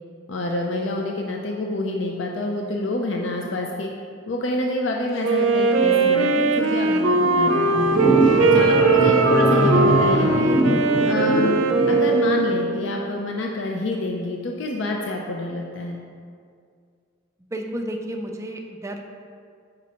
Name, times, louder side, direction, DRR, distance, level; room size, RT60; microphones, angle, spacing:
voice 1, 0.3-3.9 4.3-8.0 8.4-10.6 11.0-11.6 11.9-16.0, left 2 dB, 70° left, 1 dB, 0.5 m, -27 dB
Wind instrument woodwind instrument, 5.2-12.9, right 3 dB, 85° right, 0.5 m, -20 dB
Thunder / Rain, 5.4-12.5, right 1 dB, 45° left, 0.9 m, -26 dB
sound 1, 7.5-11.8, right 1 dB, 15° left, 1.0 m, -25 dB
voice 2, 17.5-19.0, right 1 dB, 15° right, 3 dB, 0.4 m, -31 dB
7.2 x 5.1 x 2.8 m, 2.2 s
head